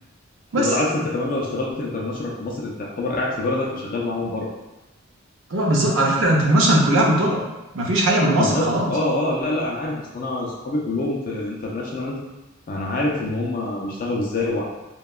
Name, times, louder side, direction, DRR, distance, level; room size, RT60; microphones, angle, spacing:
voice 1, 0.6-4.5 8.3-12.2 12.7-14.6, left 2 dB, 40° left, -2 dB, 0.3 m, -26 dB
voice 2, 5.5-7.4 7.7-8.9, right 1 dB, 60° right, -2 dB, 0.5 m, -19 dB
2.7 x 2.1 x 2.3 m, 1.0 s
head